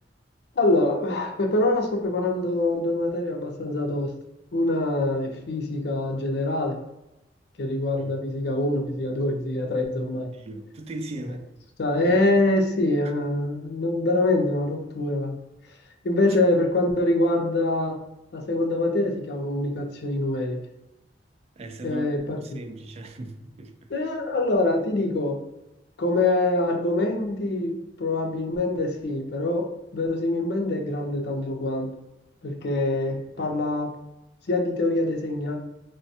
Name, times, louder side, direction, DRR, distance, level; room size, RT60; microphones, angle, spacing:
voice 1, 0.6-4.1 4.5-6.8 7.6-10.3 11.8-15.4 16.0-18.0 18.3-20.6 21.8-22.4 23.9-25.4 26.0-31.9 32.4-33.9 34.5-35.6, left 2 dB, 65° left, 0.5 m, -24 dB
voice 2, 10.3-11.5 12.0-12.1 16.2-16.4 21.6-22.1 22.4-23.7 33.4-33.5, right 2 dB, 35° right, 0.3 m, -38 dB
3.4 x 2.1 x 2.7 m
head